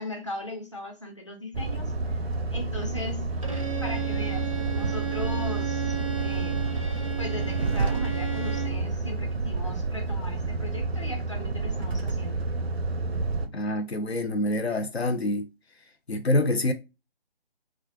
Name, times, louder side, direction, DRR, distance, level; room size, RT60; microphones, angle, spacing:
voice 1, 0.0-2.2 2.5-3.4 3.8-6.7 7.2-12.5, left 1 dB, 30° left, 0.5 m, -38 dB
Truck, 1.5-13.5, right 3 dB, 85° right, 0.5 m, -29 dB
Bowed string instrument, 3.4-8.9, right 10 dB, 35° right, 0.4 m, -34 dB
voice 2, 13.5-15.5 16.1-16.7, left 1 dB, 85° left, 0.7 m, -26 dB
2.4 x 2.1 x 2.5 m
figure-of-eight pair, 155°, 31 cm